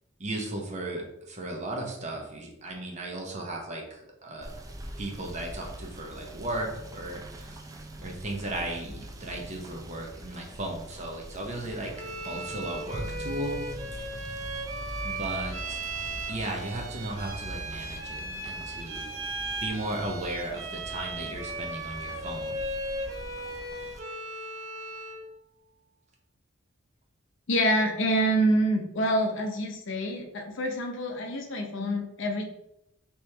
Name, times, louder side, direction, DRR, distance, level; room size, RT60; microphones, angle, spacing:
voice 1, 0.2-4.6 5.0-7.6 8.0-11.9 12.2-13.6 15.0-15.8 16.3-19.1 19.6-22.6, right 1 dB, 35° right, 0 dB, 0.7 m, -36 dB
Rain / Motor vehicle (road), 4.4-24.0, right 1 dB, 15° right, 0.3 m, -43 dB
Bowed string instrument, 11.9-25.3, right 2 dB, 75° right, 0.7 m, -37 dB
voice 2, 27.5-32.4, right 1 dB, 60° left, 3 dB, 0.6 m, -26 dB
3.4 x 3.0 x 3.3 m, 0.85 s
head